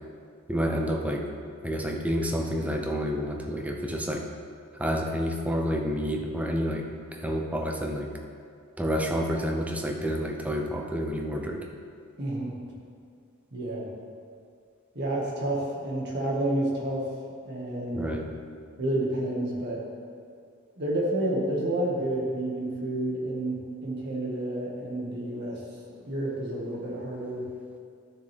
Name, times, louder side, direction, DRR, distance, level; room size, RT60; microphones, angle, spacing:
voice 1, 0.5-1.3 1.6-4.3 4.8-8.1 8.8-11.7 17.9-18.3, equal, 5° right, 1 dB, 0.6 m, -29 dB
voice 2, 12.2-12.5 13.5-13.9 14.9-17.1 17.4-18.1 18.8-19.8 20.8-25.6 25.9-27.5, right 1 dB, 50° right, -3 dB, 1.7 m, -30 dB
12.5 x 6.6 x 3.4 m, 2.3 s
head